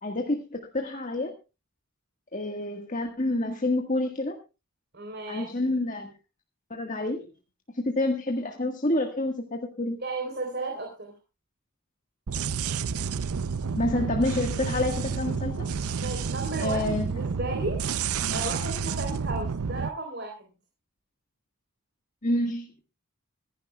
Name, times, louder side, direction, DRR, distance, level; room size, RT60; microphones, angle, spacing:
voice 1, 0.0-1.3 2.3-4.4 5.3-6.1 6.7-7.3 7.7-10.0 13.7-15.7 16.6-17.1 18.2-18.4 22.2-22.6, left 1 dB, 35° left, 3 dB, 1.6 m, -28 dB
voice 2, 4.9-5.5 10.0-11.1 16.0-17.8 18.3-20.4, right 2 dB, 50° right, 1 dB, 3.7 m, -34 dB
sound 1, 12.3-19.9, right 5 dB, 80° right, 0.6 m, -30 dB
25.5 x 11.0 x 2.3 m, 0.28 s
head